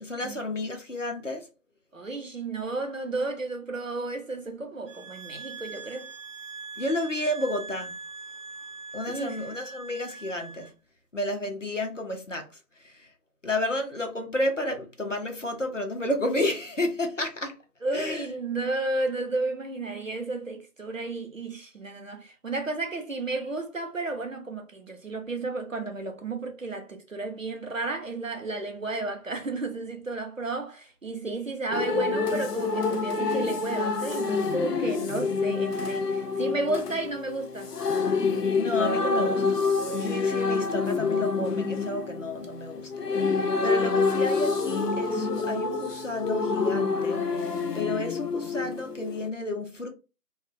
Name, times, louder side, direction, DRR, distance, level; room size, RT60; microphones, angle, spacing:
voice 1, 0.0-1.5 6.8-8.0 8.9-10.7 11.1-13.1 13.4-17.6 17.9-18.3 38.5-39.6 39.9-49.9, left 1 dB, 55° left, 0.5 m, -31 dB
voice 2, 1.9-6.1 9.1-9.4 17.8-37.7, right 2 dB, 55° right, 0.6 m, -32 dB
sound 1, 4.9-10.7, right 4 dB, ahead, 0.5 m, -42 dB
sound 2, 31.7-49.3, left 4 dB, 90° left, 0.7 m, -27 dB
2.4 x 2.1 x 2.5 m
figure-of-eight pair, 180°, 46 cm